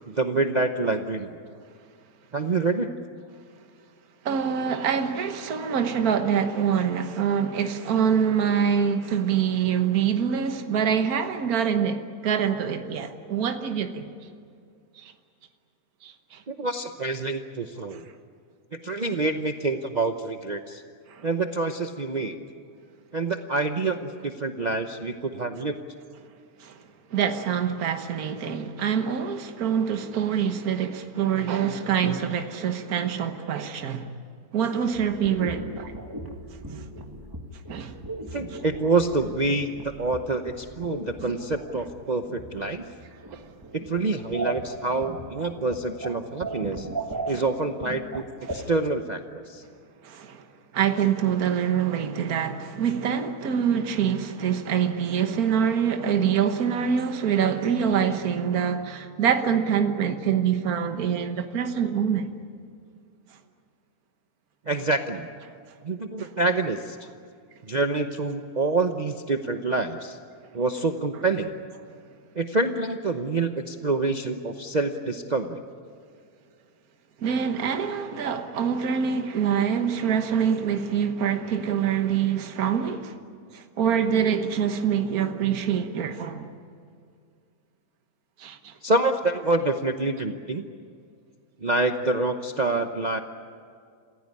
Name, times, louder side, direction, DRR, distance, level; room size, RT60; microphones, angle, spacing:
voice 1, 0.0-1.4 2.3-2.9 16.5-18.1 18.7-20.8 21.2-22.4 23.1-25.8 38.3-42.9 43.7-46.9 47.3-48.2 48.5-49.6 64.7-65.3 65.8-67.0 67.6-70.2 70.5-71.5 72.3-75.6 88.8-90.6 91.6-93.2, right 3 dB, 35° right, 0.8 m, -27 dB
voice 2, 4.2-14.1 15.0-15.1 16.0-16.4 21.1-21.3 26.6-26.7 27.1-34.1 34.5-35.6 37.7-37.9 43.3-43.4 48.5-48.6 50.0-50.4 50.7-62.3 77.2-83.1 83.5-86.5 88.4-88.7, right 7 dB, 65° right, 1.7 m, -25 dB
sound 1, 34.9-48.5, right 2 dB, 15° right, 1.7 m, -38 dB
27.5 x 16.0 x 9.9 m
omnidirectional pair, 1.7 m